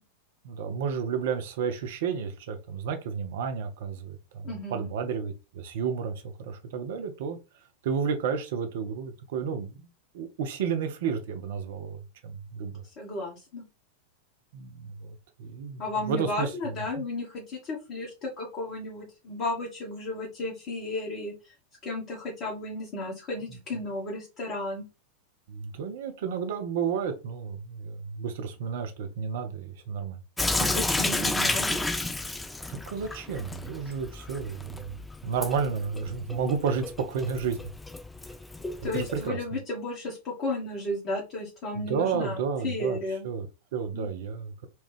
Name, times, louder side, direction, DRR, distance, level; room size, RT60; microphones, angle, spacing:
voice 1, 0.4-7.4 7.8-9.8 10.1-12.8 14.5-16.7 25.5-30.2 32.7-37.6 38.9-39.4 41.7-43.0 43.2-44.7, right 6 dB, 55° right, 0.6 m, -32 dB
voice 2, 4.4-4.9 13.0-13.6 15.8-21.5 21.8-24.8 30.6-31.9 38.8-43.3 43.9-44.1, left 2 dB, 35° left, 1.3 m, -34 dB
Sink (filling or washing) / Drip, 30.4-39.3, left 2 dB, 10° left, 0.4 m, -32 dB
4.2 x 2.3 x 3.2 m
figure-of-eight pair, 90°, 0 cm